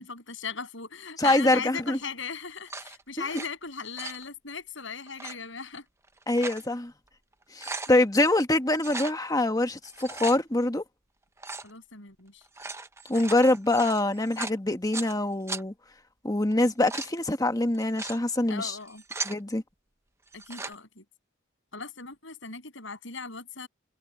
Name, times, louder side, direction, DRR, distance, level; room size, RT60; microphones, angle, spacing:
voice 1, 0.0-5.8 11.6-12.4 18.5-19.0 20.3-21.0 21.7-23.7, left 5 dB, 65° left, 7.9 m, -38 dB
voice 2, 1.2-2.0 3.2-3.3 6.3-6.9 7.5-10.8 13.1-15.7 16.2-18.8 19.2-19.6, left 1 dB, 20° left, 1.4 m, -24 dB
sound 1, 1.2-1.6 2.6-3.5 3.8-4.2 5.1-5.4 6.0-6.7 7.1-7.2 7.4-7.9 8.8-9.2 9.8-10.4 11.4-11.7 12.4-15.1 15.5-15.6 16.5-17.1 17.7-18.2 18.8-19.4 20.3-20.7, right 3 dB, 15° right, 0.9 m, -37 dB
head